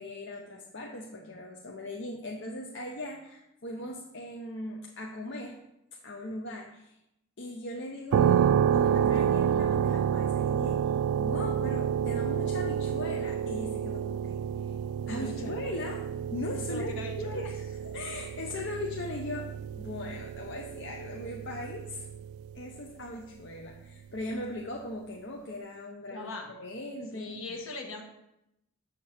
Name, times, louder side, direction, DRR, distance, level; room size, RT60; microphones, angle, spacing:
voice 1, 0.0-5.6 6.0-6.9 7.4-10.8 11.2-14.4 15.1-16.0 16.3-16.9 17.2-17.6 17.8-22.1 22.5-27.6, left 1 dB, 55° left, 0 dB, 0.7 m, -39 dB
sound 1, 8.1-22.8, right 8 dB, 85° right, 0.3 m, -29 dB
voice 2, 15.1-15.6 16.6-17.5 26.1-26.5 27.1-28.0, left 3 dB, 70° left, 2 dB, 1.4 m, -40 dB
7.2 x 6.7 x 4.3 m, 0.85 s
head